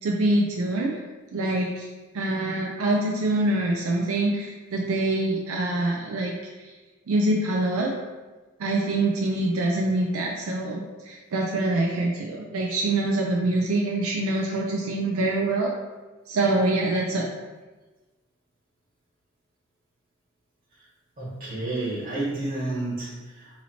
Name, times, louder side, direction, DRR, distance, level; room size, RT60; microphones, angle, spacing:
voice 1, 0.0-1.0 1.3-1.9 2.1-6.4 6.6-6.7 7.1-7.9 8.6-15.7 16.3-17.2, right 2 dB, 85° right, -1 dB, 0.4 m, -25 dB
voice 2, 21.2-23.5, right 2 dB, 45° right, -6 dB, 1.4 m, -30 dB
2.8 x 2.7 x 4.2 m, 1.2 s
head